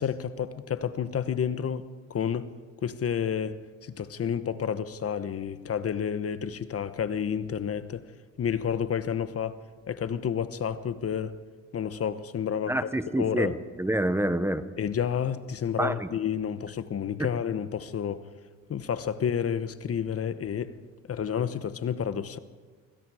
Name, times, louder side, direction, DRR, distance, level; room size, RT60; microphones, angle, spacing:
voice 1, 0.0-2.5 2.8-8.0 8.4-11.4 11.7-12.9 13.2-13.6 14.8-18.3 18.7-20.8 21.1-22.4, left 8 dB, 50° left, 1.2 m, -30 dB
voice 2, 12.7-14.6 15.8-16.1 17.2-17.3, right 1 dB, 10° right, 1.2 m, -27 dB
26.0 x 24.5 x 5.0 m
cardioid pair, 90°, 30 cm